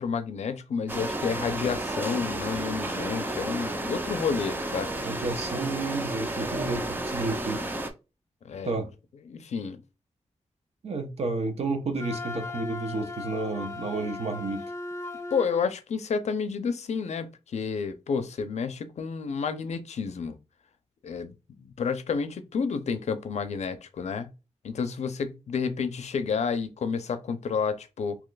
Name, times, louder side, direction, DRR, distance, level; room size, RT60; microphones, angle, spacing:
voice 1, 0.0-4.9 8.4-8.7 9.3-9.8 15.3-20.4 21.0-21.3 21.6-24.3 24.6-28.2, left 5 dB, 70° left, 0.5 m, -30 dB
sound 1, 0.9-7.9, right 1 dB, 15° right, 0.5 m, -32 dB
voice 2, 5.0-7.7 8.6-8.9 10.8-14.7, right 3 dB, 65° right, 0.7 m, -31 dB
Wind instrument woodwind instrument, 12.0-15.7, left 3 dB, 25° left, 0.6 m, -37 dB
2.9 x 2.3 x 3.9 m
wide cardioid pair, 135°, 12 cm